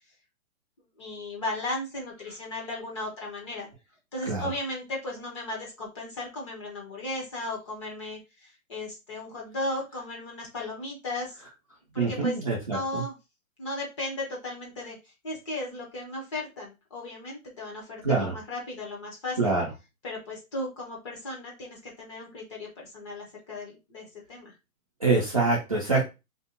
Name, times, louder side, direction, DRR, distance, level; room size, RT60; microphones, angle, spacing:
voice 1, 1.0-3.7 4.1-11.4 11.9-13.2 13.6-19.6 20.0-24.5, left 2 dB, 20° left, -3 dB, 0.6 m, -36 dB
voice 2, 12.0-13.0 18.0-18.4 19.4-19.6 25.0-26.0, right 3 dB, 25° right, -5 dB, 0.4 m, -25 dB
2.7 x 2.1 x 3.6 m, 0.27 s
hypercardioid pair, 155°, 43 cm